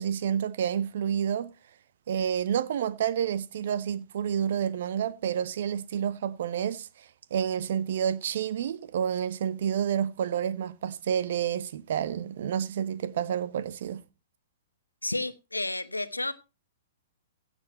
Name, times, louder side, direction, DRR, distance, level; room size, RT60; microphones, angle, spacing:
voice 1, 0.0-1.5 2.1-14.0, right 8 dB, 55° right, 0.9 m, -29 dB
voice 2, 15.0-16.3, left 2 dB, 90° left, 1.1 m, -31 dB
15.5 x 8.1 x 4.3 m
figure-of-eight pair, 110°, 0 cm